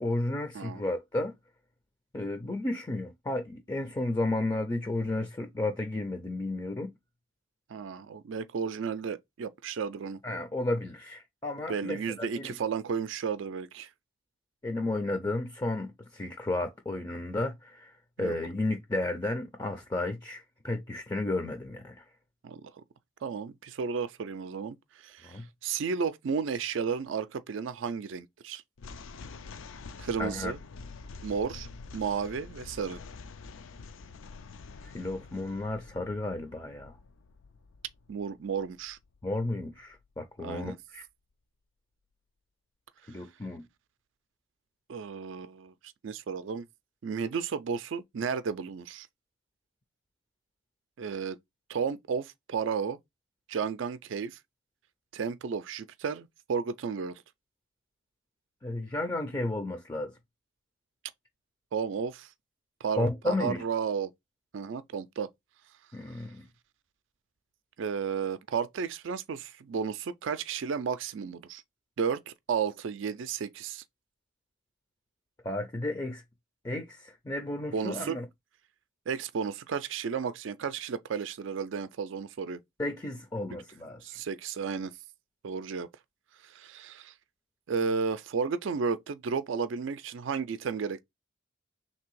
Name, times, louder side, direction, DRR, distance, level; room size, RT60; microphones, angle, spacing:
voice 1, 0.0-1.3 2.1-6.9 10.2-12.5 14.6-17.9 18.2-22.0 25.2-25.4 30.2-30.5 34.8-37.0 39.2-41.0 43.1-43.6 58.6-60.1 63.0-63.6 65.9-66.5 75.4-76.2 76.6-78.3 82.8-84.0, left 2 dB, 20° left, 0.5 m, -33 dB
voice 2, 7.7-10.2 11.7-13.9 18.2-18.4 22.4-22.7 23.2-24.8 25.0-28.6 30.0-30.6 31.2-31.7 31.9-33.0 38.1-39.0 40.4-40.8 44.9-45.7 46.0-46.7 47.0-49.1 51.0-51.4 51.7-53.0 53.5-54.4 55.1-57.2 61.7-62.3 62.8-64.1 64.5-65.3 67.8-71.6 72.0-73.8 77.7-78.2 79.1-82.6 84.0-84.9 85.4-85.9 86.4-87.1 87.7-91.0, right 6 dB, 65° right, 0.4 m, -33 dB
sound 1, 28.8-40.1, left 4 dB, 75° left, 0.5 m, -47 dB
3.3 x 2.7 x 4.6 m
head